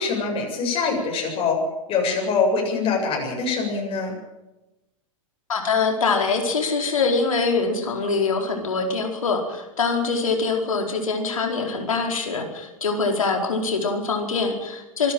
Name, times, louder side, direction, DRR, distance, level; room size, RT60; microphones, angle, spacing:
voice 1, 0.0-1.6 1.9-4.1, left 4 dB, 30° left, 0 dB, 7.7 m, -24 dB
voice 2, 5.5-15.1, left 4 dB, 75° left, 3 dB, 4.7 m, -24 dB
26.0 x 12.0 x 9.0 m, 0.99 s
figure-of-eight pair, 95°, 18 cm